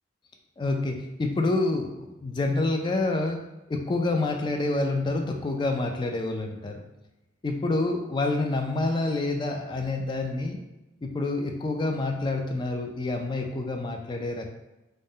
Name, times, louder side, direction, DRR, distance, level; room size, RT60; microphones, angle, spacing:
voice 1, 0.6-6.8 7.4-10.6 11.0-14.5, left 2 dB, 25° left, 3 dB, 0.3 m, -28 dB
2.5 x 2.1 x 3.5 m, 0.98 s
head